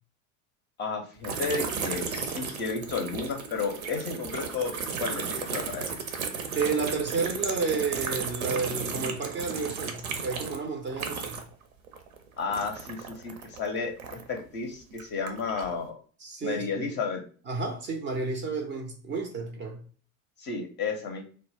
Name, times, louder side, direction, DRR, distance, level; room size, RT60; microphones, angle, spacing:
voice 1, 0.8-4.7 5.0-6.0 12.4-16.0 16.4-17.2 20.4-21.2, left 5 dB, 25° left, 0.5 m, -32 dB
sound 1, 1.2-11.6 11.9-14.4 14.9-15.7, right 5 dB, 75° right, 0.6 m, -34 dB
voice 2, 6.5-11.5 16.2-16.9 17.5-19.9, right 4 dB, 30° right, 0.4 m, -31 dB
2.1 x 2.0 x 3.2 m
figure-of-eight pair, 80°, 43 cm